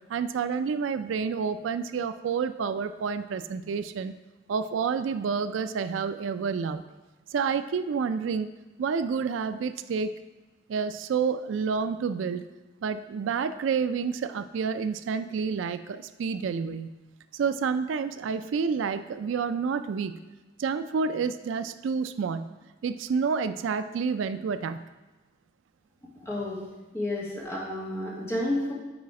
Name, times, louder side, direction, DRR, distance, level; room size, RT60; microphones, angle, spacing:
voice 1, 0.1-4.1 4.5-6.8 7.3-10.1 10.7-12.4 12.8-17.0 17.3-20.2 20.6-22.5 22.8-24.8, right 5 dB, 80° right, 11 dB, 0.3 m, -29 dB
voice 2, 26.1-26.6 26.9-28.7, left 1 dB, 15° left, -5 dB, 1.6 m, -31 dB
8.7 x 4.2 x 4.8 m, 1.1 s
head